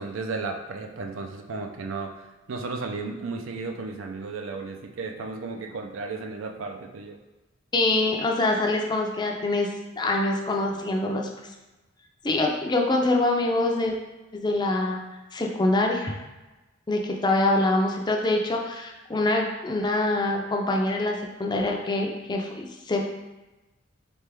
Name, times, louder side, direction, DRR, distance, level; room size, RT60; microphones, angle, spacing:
voice 1, 0.0-2.1 2.5-7.2, right 3 dB, 80° right, 5 dB, 0.5 m, -34 dB
voice 2, 7.7-9.7 10.0-11.3 12.2-13.9 14.3-15.0 15.3-16.2 16.9-23.0, left 2 dB, 20° left, 1 dB, 0.4 m, -25 dB
4.1 x 3.4 x 3.3 m, 1.1 s
head